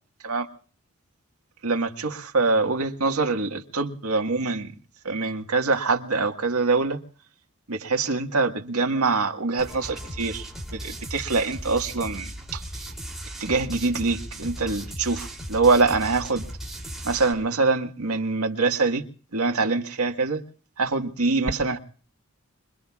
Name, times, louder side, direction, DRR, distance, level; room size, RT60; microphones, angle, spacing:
voice 1, 1.6-4.7 5.0-7.0 7.7-12.6 13.4-16.5 17.0-19.0 19.3-20.4 20.8-21.8, right 3 dB, 90° right, 1.7 m, -24 dB
sound 1, 9.6-17.3, equal, ahead, 3.1 m, -37 dB
26.5 x 22.5 x 2.4 m
head